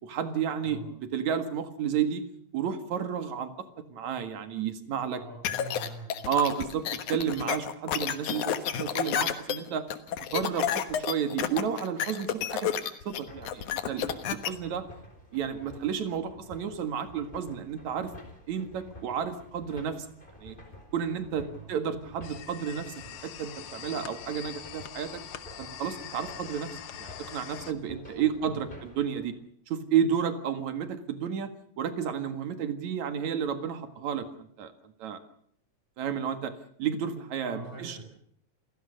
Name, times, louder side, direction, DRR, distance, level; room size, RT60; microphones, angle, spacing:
voice 1, 0.0-2.3 2.5-5.2 6.3-9.9 10.3-12.7 13.1-14.8 15.3-18.1 18.5-20.1 20.4-20.6 20.9-22.9 23.2-25.2 25.6-29.3 29.7-31.5 31.8-35.2 36.0-36.5 36.8-38.0, right 8 dB, 70° right, 9 dB, 3.1 m, -31 dB
voice 2, 5.2-6.3 21.5-21.7 28.4-28.6 37.4-38.0, right 1 dB, 20° right, 2 dB, 5.2 m, -43 dB
sound 1, 5.5-14.5, left 9 dB, 85° left, 2.8 m, -30 dB
sound 2, 13.3-29.3, left 1 dB, 15° left, 4.8 m, -51 dB
sound 3, 22.2-27.7, left 10 dB, 55° left, 1.7 m, -43 dB
28.0 x 17.0 x 6.7 m, 0.65 s
omnidirectional pair, 3.4 m